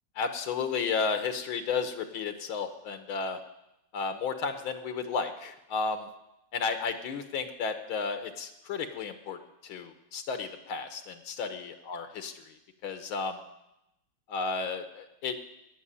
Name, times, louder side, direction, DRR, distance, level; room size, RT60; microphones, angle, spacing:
voice 1, 0.2-3.4 3.9-6.1 6.5-9.4 9.6-12.3 12.8-13.4 14.3-15.4, left 5 dB, 75° left, 8 dB, 1.8 m, -33 dB
16.5 x 6.5 x 9.9 m, 0.89 s
omnidirectional pair, 2.3 m